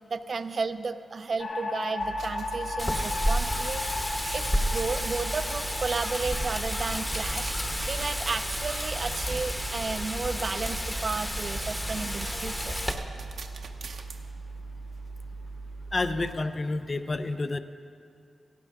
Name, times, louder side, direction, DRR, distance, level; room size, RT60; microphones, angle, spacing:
voice 1, 0.1-7.5 7.9-12.8, right 4 dB, 45° right, 11 dB, 0.5 m, -33 dB
sound 1, 1.4-11.7, left 2 dB, 50° left, 1.9 m, -37 dB
sound 2, 2.0-16.3, right 3 dB, 60° right, 0.8 m, -40 dB
Wind, 2.8-12.9, equal, 10° left, 0.9 m, -31 dB
voice 2, 15.9-17.6, left 2 dB, 30° left, 10 dB, 0.5 m, -29 dB
17.5 x 16.5 x 3.6 m, 2.4 s
wide cardioid pair, 145°, 0 cm